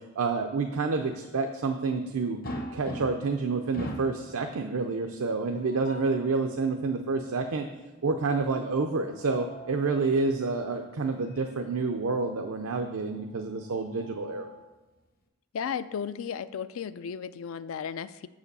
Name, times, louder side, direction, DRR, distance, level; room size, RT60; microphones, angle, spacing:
voice 1, 0.2-2.4 2.7-7.7 8.0-14.5, right 4 dB, 80° right, 4 dB, 0.5 m, -28 dB
sound 1, 2.4-3.4 3.7-4.2 5.4-6.2 8.9-9.9 11.3-11.5 11.9-12.0 13.5-14.7, equal, 40° left, 0.7 m, -41 dB
voice 2, 15.5-18.3, left 7 dB, 70° left, 15 dB, 0.3 m, -34 dB
6.9 x 4.9 x 6.6 m, 1.1 s
head